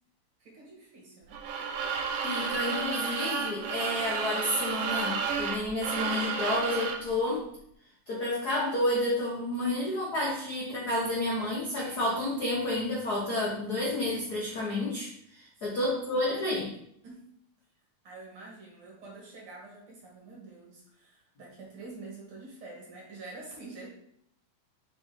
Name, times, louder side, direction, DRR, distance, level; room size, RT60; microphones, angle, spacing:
voice 1, 0.4-1.4 15.6-15.8 17.0-17.2 18.0-23.9, right 3 dB, 50° right, -3 dB, 2.3 m, -47 dB
sound 1, 1.3-7.1, right 5 dB, 70° right, 1.5 m, -32 dB
voice 2, 2.2-7.4 8.1-16.7, left 1 dB, 75° left, -4 dB, 0.8 m, -30 dB
5.2 x 4.3 x 4.9 m, 0.69 s
omnidirectional pair, 3.6 m